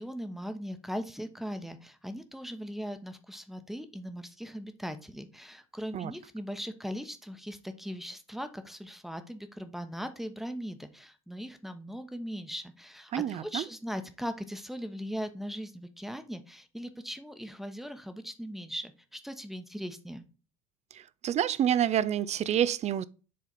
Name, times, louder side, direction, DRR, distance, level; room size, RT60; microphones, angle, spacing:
voice 1, 0.0-20.2, equal, ahead, 1.0 m, -39 dB
voice 2, 13.1-13.6 20.9-23.0, right 10 dB, 40° right, 0.5 m, -28 dB
7.5 x 4.0 x 4.0 m
hypercardioid pair, 75°, 18 cm